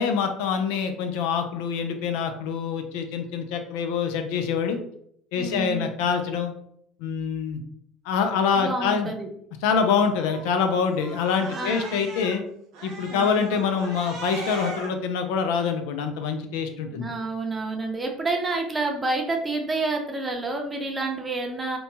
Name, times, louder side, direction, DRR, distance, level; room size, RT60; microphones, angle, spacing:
voice 1, 0.0-4.8 5.3-6.5 7.0-7.6 8.1-9.1 9.6-12.4 12.8-17.1, left 6 dB, 80° left, 6 dB, 0.3 m, -25 dB
voice 2, 5.3-5.9 8.6-9.3 11.4-12.0 13.1-13.4 16.9-21.8, right 3 dB, 20° right, 2 dB, 0.6 m, -29 dB
Cat, 10.0-12.4 12.7-14.9, right 3 dB, 65° right, 0.8 m, -39 dB
2.7 x 2.2 x 2.7 m, 0.70 s
supercardioid pair, 90°, 0 cm